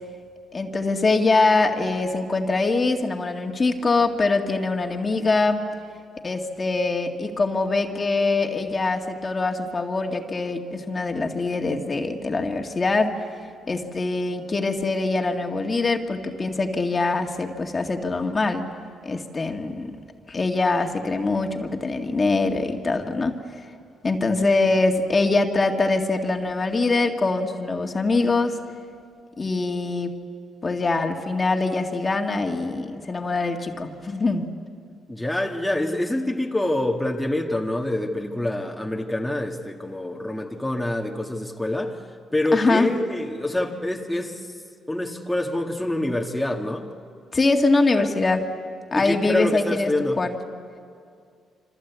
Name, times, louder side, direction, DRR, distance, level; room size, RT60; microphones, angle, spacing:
voice 1, 0.5-5.7 6.2-13.2 13.7-18.7 19.0-19.9 20.3-23.3 24.0-28.6 29.4-30.1 30.6-34.4 42.5-42.9 47.3-48.5 48.9-49.9 50.2-50.3, left 3 dB, 30° left, 3 dB, 2.1 m, -23 dB
voice 2, 35.1-42.0 42.3-44.4 44.9-46.9 48.9-50.2, left 1 dB, 5° left, 0 dB, 1.9 m, -26 dB
27.5 x 25.5 x 8.3 m, 2.3 s
cardioid pair, 90°, 0 cm